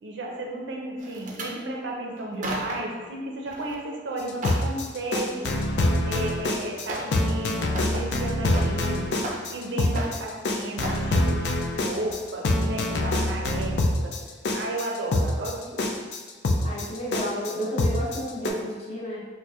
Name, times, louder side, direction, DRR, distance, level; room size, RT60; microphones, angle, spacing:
voice 1, 0.0-5.5 6.0-9.2 9.5-11.4 11.8-14.1 14.5-15.9, right 2 dB, 85° right, -1 dB, 0.6 m, -33 dB
sound 1, 1.0-1.5 2.2-3.0 3.4-3.8 4.1-4.7 6.1-6.2 6.9-7.2 7.5-8.9 9.2-9.7 9.9-10.4 10.8-11.1 11.6-11.8 12.1-12.2, right 1 dB, 45° right, 0.4 m, -35 dB
sound 2, 4.3-18.5, left 1 dB, 70° left, 0.4 m, -25 dB
voice 2, 16.6-19.3, equal, 35° left, -5 dB, 0.8 m, -31 dB
4.4 x 2.5 x 2.4 m, 1.4 s
head